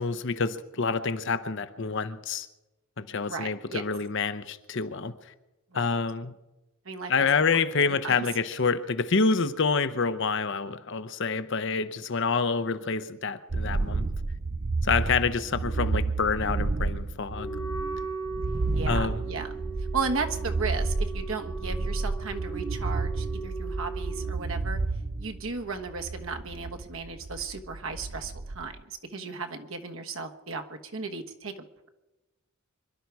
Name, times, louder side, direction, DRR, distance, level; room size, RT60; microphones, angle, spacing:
voice 1, 0.0-2.5 3.0-5.1 5.7-6.3 7.1-14.1 14.8-17.5 18.9-19.2, left 4 dB, 55° left, 0.8 m, -27 dB
voice 2, 3.3-3.8 5.7-5.8 6.8-7.3 8.0-8.2 15.0-15.2 18.7-24.8 25.2-31.9, right 4 dB, 65° right, 1.3 m, -35 dB
sound 1, 13.5-28.8, right 3 dB, 35° right, 0.5 m, -31 dB
Wind instrument woodwind instrument, 17.3-24.4, right 4 dB, 85° left, 1.6 m, -38 dB
25.5 x 11.5 x 4.7 m
head